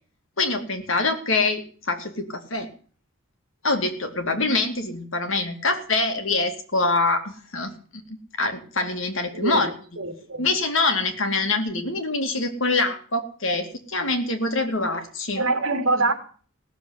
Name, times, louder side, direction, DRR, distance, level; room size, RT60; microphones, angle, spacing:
voice 1, 0.4-2.7 3.6-7.7 8.4-9.7 10.4-15.4, left 3 dB, 65° left, 6 dB, 2.6 m, -25 dB
voice 2, 9.3-9.7 10.0-10.5 15.4-16.1, right 2 dB, 65° right, 5 dB, 3.2 m, -24 dB
17.5 x 7.2 x 9.5 m, 0.43 s
head